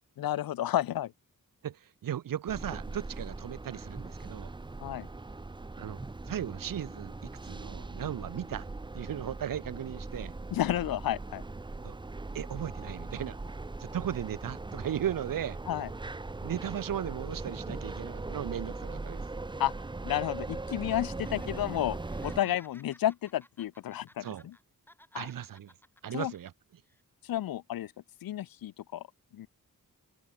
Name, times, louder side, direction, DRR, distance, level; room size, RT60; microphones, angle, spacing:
voice 1, 0.2-1.1 4.8-5.1 10.5-11.4 15.7-15.9 19.6-19.7 20.0-22.0 22.2-24.5 25.1-25.3 26.1-26.3 27.2-27.9 28.2-29.0 29.3-29.5, left 12 dB, 90° left, 0.5 m, -31 dB
voice 2, 1.6-4.5 5.8-6.0 6.3-8.7 8.9-10.3 11.8-12.0 12.3-13.4 13.8-15.6 16.4-19.3 22.4-22.5 24.2-24.5 25.1-25.7 26.0-26.5, right 10 dB, 75° right, 0.7 m, -36 dB
sound 1, 2.5-22.4, right 3 dB, 15° right, 0.6 m, -40 dB
Laughter, 21.1-21.6 21.9-24.6 24.9-26.5 26.9-27.0, left 1 dB, 5° left, 3.8 m, -58 dB
open air
wide cardioid pair, 155°, 34 cm